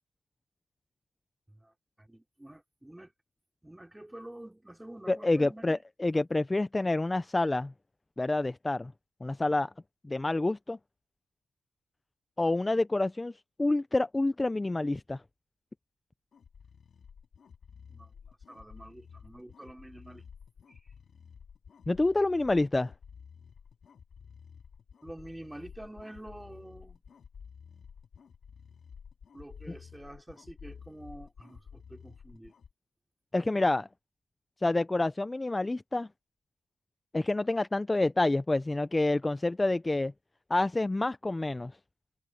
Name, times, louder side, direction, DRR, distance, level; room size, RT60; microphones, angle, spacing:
voice 1, 1.5-3.1 3.6-5.8 17.9-20.2 20.7-20.9 25.0-27.0 29.3-32.5, right 1 dB, 10° right, 4.8 m, -48 dB
voice 2, 5.1-7.7 8.2-8.9 9.2-9.7 10.0-10.8 12.4-13.3 13.6-15.2 21.9-22.9 33.3-33.9 34.6-36.1 37.1-40.1 40.5-41.7, left 2 dB, 25° left, 0.7 m, -28 dB
sound 1, 16.3-32.7, left 6 dB, 65° left, 2.5 m, -52 dB
cardioid pair, 55°, 0 cm